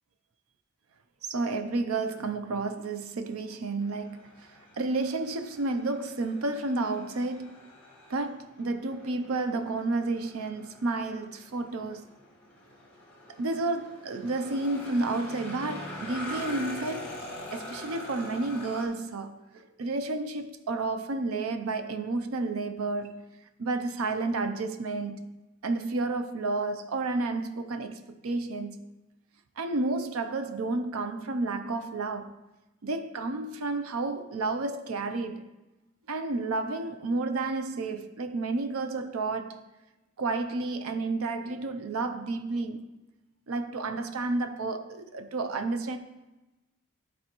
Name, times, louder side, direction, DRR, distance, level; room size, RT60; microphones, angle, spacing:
voice 1, 1.2-4.5 4.8-7.6 8.1-12.0 13.4-23.3 23.6-25.4 25.6-28.8 29.6-32.3 32.8-35.4 36.1-39.7 40.2-42.8 43.5-46.0, right 3 dB, 90° right, 0.5 m, -31 dB
sound 1, 3.8-18.9, left 1 dB, 10° left, 1.3 m, -44 dB
12.5 x 4.3 x 3.0 m
head